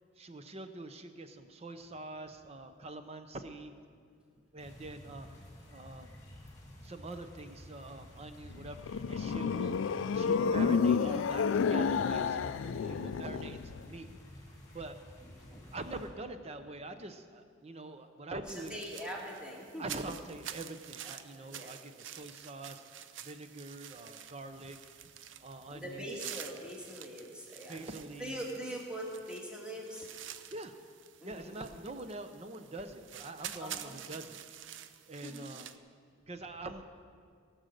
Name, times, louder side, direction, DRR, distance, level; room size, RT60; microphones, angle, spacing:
voice 1, 0.2-3.7 4.5-5.3 5.7-6.2 6.8-9.8 10.1-14.1 14.7-15.0 15.7-18.7 19.8-22.8 23.2-24.8 25.4-26.1 27.7-28.4 30.5-30.7 31.2-34.4 35.1-35.9 36.3-36.8, right 2 dB, 35° right, 8 dB, 0.7 m, -44 dB
sound 1, 4.6-16.1, left 1 dB, 20° left, 2.3 m, -52 dB
sound 2, 8.5-13.9, left 6 dB, 80° left, 0.4 m, -30 dB
voice 2, 12.6-13.1 15.5-15.7 18.5-20.0 21.0-21.7 25.7-27.8 28.2-30.1 31.2-31.7 33.6-34.0 35.2-35.5, equal, 5° right, -3 dB, 2.0 m, -43 dB
sound 3, 18.5-35.8, right 10 dB, 75° right, 0.5 m, -48 dB
18.0 x 6.3 x 6.7 m, 2.2 s
head